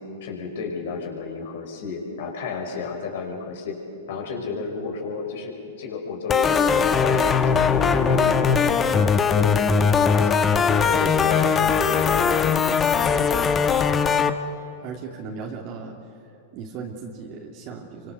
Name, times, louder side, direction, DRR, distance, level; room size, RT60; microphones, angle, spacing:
voice 1, 0.0-3.8 4.1-10.4 10.9-13.3, left 4 dB, 65° left, 2 dB, 5.7 m, -32 dB
sound 1, 6.3-14.3, left 6 dB, 20° left, 1.4 m, -20 dB
voice 2, 14.8-16.0 16.5-18.1, right 5 dB, 45° right, 0 dB, 2.8 m, -36 dB
27.0 x 24.5 x 6.9 m, 2.6 s
hypercardioid pair, 105°, 0 cm